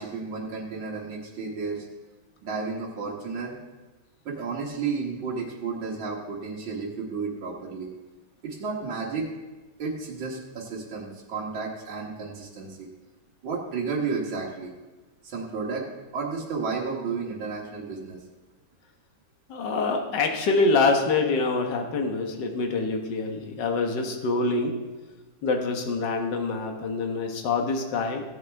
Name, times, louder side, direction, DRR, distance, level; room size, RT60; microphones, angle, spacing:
voice 1, 0.0-1.9 2.4-3.5 4.3-7.9 8.4-9.3 9.8-12.9 13.4-14.7 15.2-15.9 16.1-18.2, right 4 dB, 90° right, -3 dB, 2.2 m, -32 dB
voice 2, 19.5-24.7 25.4-28.2, left 3 dB, 65° left, 4 dB, 1.9 m, -25 dB
16.0 x 8.6 x 3.5 m, 1.2 s
omnidirectional pair, 2.1 m